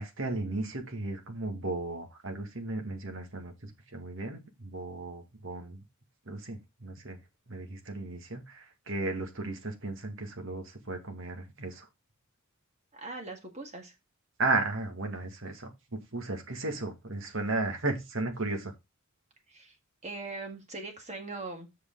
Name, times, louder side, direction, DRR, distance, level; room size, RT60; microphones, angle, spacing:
voice 1, 0.0-5.8 6.3-7.2 7.5-11.9 14.4-18.7, right 2 dB, 65° right, 2.1 m, -35 dB
voice 2, 12.9-13.9 19.5-19.8 20.0-21.8, right 3 dB, 30° right, 1.7 m, -41 dB
8.2 x 6.4 x 3.8 m
head